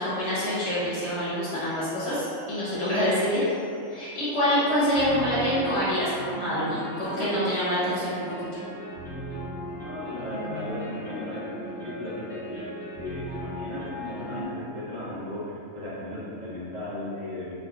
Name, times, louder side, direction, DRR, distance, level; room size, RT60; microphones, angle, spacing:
voice 1, 0.0-3.4 3.9-8.2, equal, 25° left, -12 dB, 1.0 m, -26 dB
sound 1, 1.6-14.5, equal, 50° left, 1.0 m, -38 dB
voice 2, 9.7-17.5, left 1 dB, 65° right, -9 dB, 0.9 m, -36 dB
3.5 x 2.2 x 2.3 m, 2.5 s
omnidirectional pair, 1.4 m